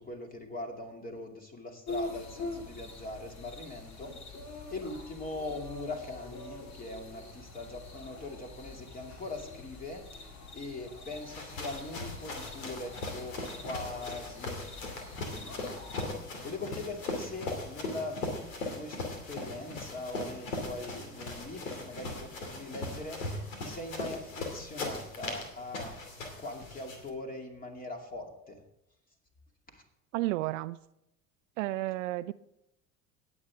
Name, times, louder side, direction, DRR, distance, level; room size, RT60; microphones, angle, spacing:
voice 1, 0.1-4.1 4.7-10.0 10.5-13.3 13.6-14.6 14.8-14.9 15.3-15.8 16.4-18.2 18.7-19.0 19.3-23.2 23.6-25.9 26.4-28.6 29.7-29.8, left 2 dB, 20° left, 2.5 m, -41 dB
sound 1, 1.9-16.1, left 2 dB, 40° left, 2.6 m, -45 dB
sound 2, 11.1-27.1, left 2 dB, 75° left, 2.6 m, -39 dB
voice 2, 30.1-30.8 31.6-32.3, right 18 dB, 65° right, 0.5 m, -32 dB
18.5 x 8.1 x 3.5 m
figure-of-eight pair, 70°, 41 cm